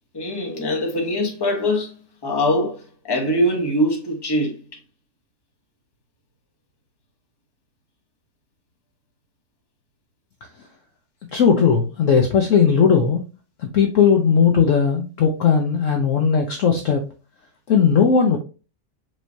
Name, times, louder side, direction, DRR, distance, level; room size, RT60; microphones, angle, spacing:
voice 1, 0.1-1.9 2.2-4.6, equal, 20° left, 0.8 m, -22 dB
voice 2, 11.3-13.2 13.6-17.0 17.7-18.4, left 6 dB, 65° left, 0.8 m, -17 dB
4.7 x 3.1 x 2.7 m
omnidirectional pair, 1.8 m